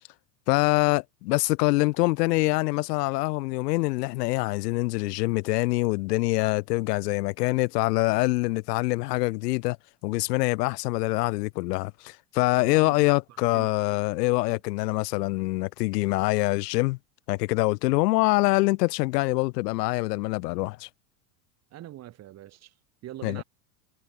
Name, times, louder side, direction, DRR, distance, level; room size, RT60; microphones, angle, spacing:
voice 1, 0.5-9.8 10.0-17.0 17.3-20.9 23.2-23.4, left 22 dB, 85° left, 0.6 m, -25 dB
voice 2, 12.5-12.9 13.5-13.7 14.5-14.6 21.7-22.7 23.0-23.4, right 13 dB, 30° right, 5.7 m, -42 dB
supercardioid pair, 155°, 47 cm